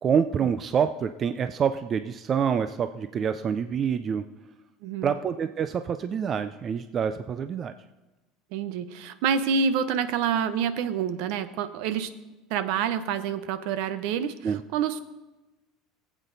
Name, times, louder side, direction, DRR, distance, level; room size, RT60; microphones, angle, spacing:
voice 1, 0.0-4.2 5.0-7.7 14.4-14.6, right 7 dB, 25° right, 10 dB, 0.3 m, -26 dB
voice 2, 4.8-5.1 8.5-12.1 12.5-15.0, right 7 dB, 60° right, 13 dB, 0.7 m, -27 dB
19.5 x 8.2 x 3.9 m, 1.1 s
cardioid pair, 170°, 0 cm